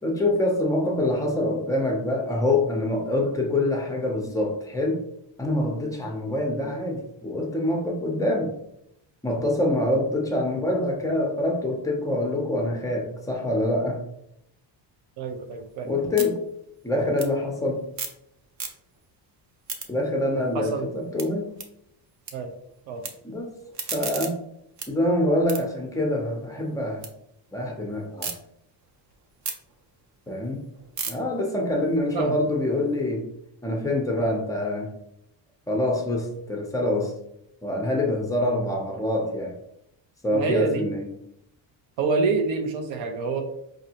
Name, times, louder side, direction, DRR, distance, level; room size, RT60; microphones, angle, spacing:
voice 1, 0.0-5.0 5.4-8.5 9.2-14.0 15.8-16.4 16.8-17.8 19.9-20.7 20.9-21.6 23.2-23.5 23.9-24.4 24.9-27.1 27.5-28.3 30.3-30.6 31.1-33.3 33.6-34.9 35.7-37.2 37.6-39.5 40.2-41.1, left 1 dB, 10° left, 1 dB, 0.5 m, -25 dB
voice 2, 15.2-15.9 20.5-21.1 22.3-22.5 22.9-23.0 32.1-32.4 40.3-40.8 42.0-43.4, right 4 dB, 85° right, 4 dB, 0.7 m, -27 dB
sound 1, 15.3-18.3 18.5-19.1 19.4-22.3 22.6-23.1 23.5-27.1 27.5-28.3 28.8-33.0, right 5 dB, 40° right, 0.5 m, -38 dB
5.0 x 2.7 x 2.8 m, 0.77 s
cardioid pair, 170°, 45 cm